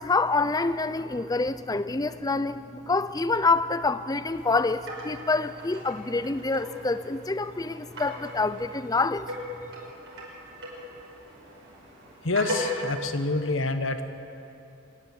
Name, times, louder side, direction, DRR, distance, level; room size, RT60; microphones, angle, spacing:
voice 1, 0.0-9.3, left 3 dB, 20° left, 13 dB, 0.6 m, -26 dB
sound 1, 4.3-13.1, equal, 70° right, 5.3 m, -39 dB
voice 2, 12.2-14.1, left 3 dB, 80° left, 8 dB, 1.2 m, -27 dB
27.0 x 10.0 x 9.6 m, 2.7 s
head